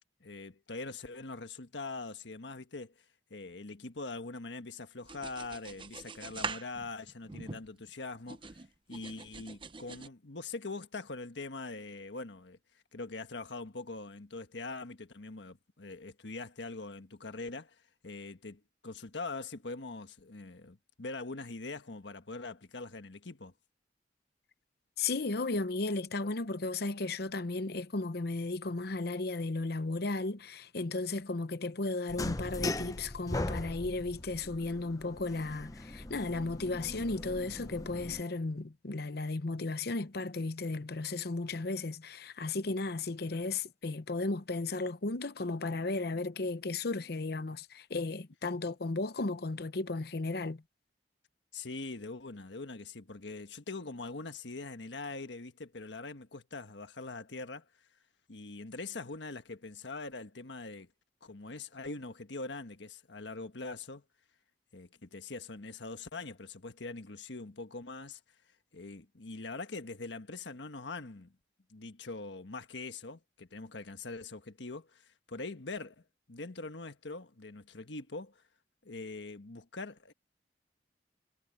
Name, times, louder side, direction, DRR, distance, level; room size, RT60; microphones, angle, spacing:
voice 1, 0.2-2.9 3.3-8.6 8.9-12.6 12.9-23.5 51.5-57.7 58.3-60.9 61.2-64.0 64.7-68.2 68.7-71.3 71.7-78.4 78.8-80.1, left 3 dB, 80° left, 1.5 m, -43 dB
sound 1, 5.0-7.9 8.3-10.1, right 5 dB, 30° right, 0.8 m, -43 dB
voice 2, 25.0-50.6, left 3 dB, 60° left, 0.8 m, -35 dB
sound 2, 32.1-38.2, left 2 dB, 20° left, 0.8 m, -39 dB
head